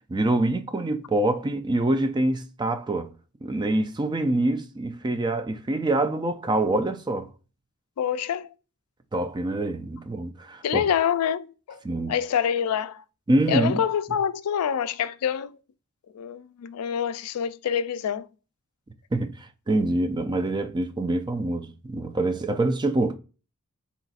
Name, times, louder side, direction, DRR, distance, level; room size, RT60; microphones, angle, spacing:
voice 1, 0.1-3.1 3.4-7.3 9.1-10.8 11.8-12.2 13.3-13.8 19.1-23.1, right 2 dB, 20° right, 0.3 m, -25 dB
voice 2, 8.0-8.5 10.6-11.8 12.1-13.0 13.5-15.6 16.1-18.3, left 8 dB, 80° left, 0.4 m, -26 dB
4.0 x 4.0 x 2.4 m
head